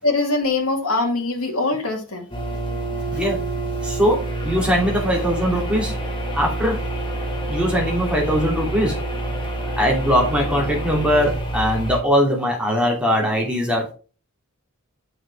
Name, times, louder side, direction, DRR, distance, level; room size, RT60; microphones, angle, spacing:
voice 1, 0.0-2.3, left 2 dB, 80° left, 1 dB, 2.4 m, -22 dB
sound 1, 2.3-12.0, right 1 dB, 20° left, 1.7 m, -27 dB
voice 2, 3.1-3.4 3.8-5.9 6.3-6.8 7.5-9.0 9.8-13.9, equal, 5° right, -2 dB, 2.8 m, -21 dB
7.8 x 6.3 x 3.4 m, 0.36 s
head